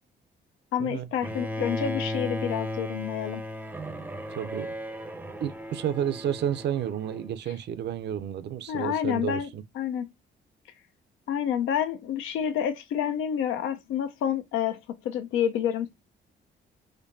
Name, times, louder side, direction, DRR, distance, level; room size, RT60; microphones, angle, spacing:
voice 1, 0.7-3.4 8.7-9.5 9.8-10.1 11.3-15.9, left 9 dB, 90° left, 0.5 m, -28 dB
Bowed string instrument, 1.2-7.3, left 1 dB, 10° right, 0.5 m, -35 dB
voice 2, 4.3-4.7 5.4-9.6, right 9 dB, 60° right, 0.5 m, -31 dB
4.3 x 2.6 x 2.5 m
cardioid pair, 90°, 20 cm